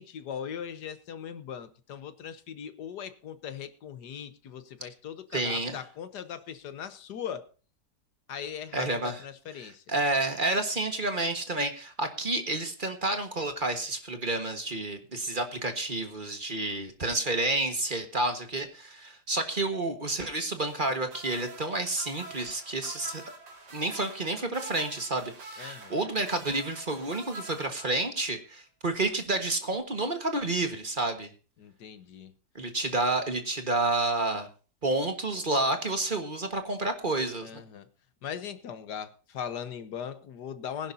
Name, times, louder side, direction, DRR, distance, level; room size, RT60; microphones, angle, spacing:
voice 1, 0.0-7.5 8.3-9.8 25.6-26.0 31.6-32.3 37.4-37.9 38.2-40.9, left 8 dB, 80° left, 11 dB, 1.7 m, -39 dB
voice 2, 5.3-5.8 8.7-9.2 9.6-23.2 23.7-31.3 32.5-34.5 34.8-37.5, right 2 dB, 30° right, 6 dB, 1.6 m, -30 dB
sound 1, 20.7-28.3 29.6-29.8, right 3 dB, 85° right, 2.6 m, -47 dB
20.5 x 11.0 x 2.8 m, 0.37 s
omnidirectional pair, 1.8 m